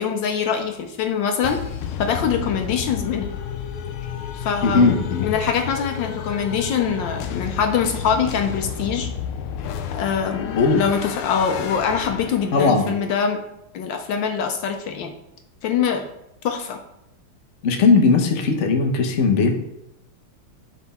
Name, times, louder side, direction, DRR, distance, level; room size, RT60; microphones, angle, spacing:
voice 1, 0.0-1.6 2.0-3.3 4.3-4.9 5.2-9.1 9.9-13.4 13.7-15.1 15.6-16.1 16.4-16.8, left 7 dB, 70° left, 5 dB, 1.2 m, -24 dB
sound 1, 1.4-12.8, left 8 dB, 90° left, 1.5 m, -31 dB
voice 2, 4.6-5.3 10.5-10.8 12.5-12.9 17.6-19.5, left 4 dB, 55° left, 4 dB, 0.8 m, -18 dB
7.4 x 4.5 x 4.1 m, 0.86 s
omnidirectional pair, 2.3 m